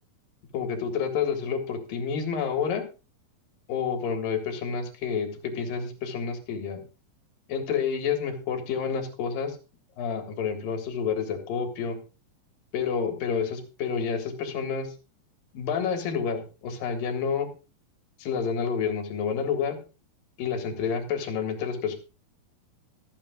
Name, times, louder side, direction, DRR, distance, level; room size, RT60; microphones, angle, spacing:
voice 1, 0.5-2.8 3.7-6.8 7.5-9.6 10.0-12.0 12.7-14.9 15.5-17.5 18.2-19.8 20.4-22.0, left 6 dB, 70° left, 5 dB, 3.3 m, -29 dB
25.5 x 8.8 x 2.4 m, 0.32 s
omnidirectional pair, 4.4 m